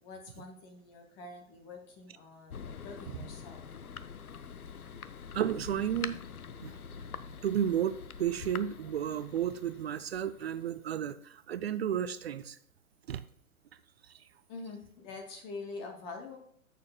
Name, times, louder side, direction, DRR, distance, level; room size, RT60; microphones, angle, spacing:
voice 1, 0.0-3.6 14.5-16.4, left 3 dB, 15° left, 4 dB, 0.5 m, -45 dB
Thunder, 2.5-10.8, left 6 dB, 90° left, 0.6 m, -45 dB
voice 2, 5.3-6.2 6.6-6.8 7.4-12.6 13.1-13.2, right 9 dB, 50° right, 13 dB, 0.4 m, -32 dB
14.0 x 6.8 x 2.2 m, 0.63 s
figure-of-eight pair, 125°, 43 cm